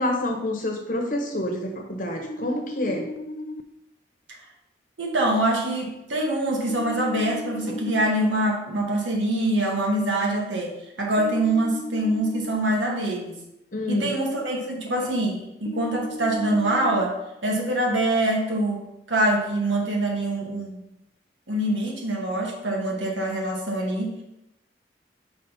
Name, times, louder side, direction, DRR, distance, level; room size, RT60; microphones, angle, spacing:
voice 1, 0.0-3.1 13.7-14.1, left 1 dB, 45° left, 2 dB, 1.1 m, -27 dB
sound 1, 2.2-3.6 6.7-8.1 11.2-12.6 15.7-17.0, left 2 dB, 70° left, 0.4 m, -35 dB
voice 2, 5.0-13.4 13.9-17.2 17.4-20.8 21.5-24.2, right 1 dB, 90° right, 0 dB, 1.5 m, -24 dB
5.1 x 4.1 x 5.5 m, 0.89 s
head